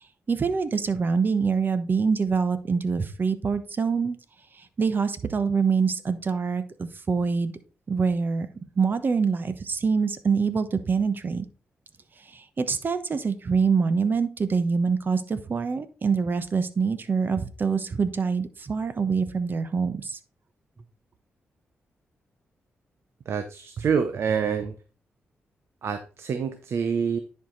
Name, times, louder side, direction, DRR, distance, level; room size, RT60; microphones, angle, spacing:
voice 1, 0.3-4.2 4.8-7.5 7.9-8.5 8.8-11.5 12.3-20.2, right 5 dB, 45° right, 11 dB, 1.0 m, -25 dB
voice 2, 23.3-24.7 25.8-27.2, right 6 dB, 70° right, 9 dB, 0.7 m, -26 dB
10.5 x 4.8 x 3.9 m, 0.35 s
cardioid pair, 70°, 5 cm